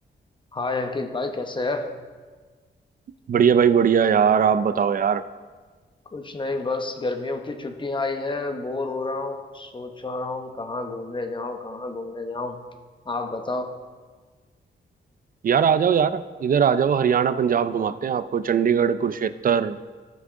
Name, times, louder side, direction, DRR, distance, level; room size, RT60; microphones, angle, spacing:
voice 1, 0.5-2.0 6.1-12.6 13.0-13.8, left 3 dB, 25° left, 6 dB, 0.9 m, -30 dB
voice 2, 3.3-5.2 15.4-19.8, right 7 dB, 45° right, 14 dB, 0.4 m, -20 dB
17.5 x 6.0 x 3.7 m, 1.4 s
wide cardioid pair, 130°, 20 cm